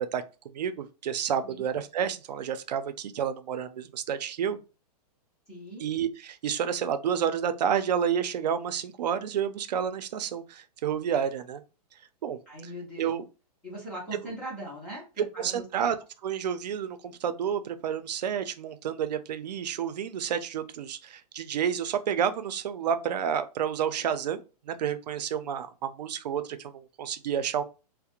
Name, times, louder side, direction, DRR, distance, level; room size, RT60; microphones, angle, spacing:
voice 1, 0.0-4.6 5.8-11.6 12.2-12.4 13.0-13.2 15.4-16.0 16.2-27.6, right 8 dB, 80° right, 0.5 m, -30 dB
voice 2, 5.5-5.8 12.5-13.1 13.6-15.9, right 1 dB, 5° left, 0.3 m, -40 dB
2.4 x 2.1 x 2.9 m
hypercardioid pair, 165°, 21 cm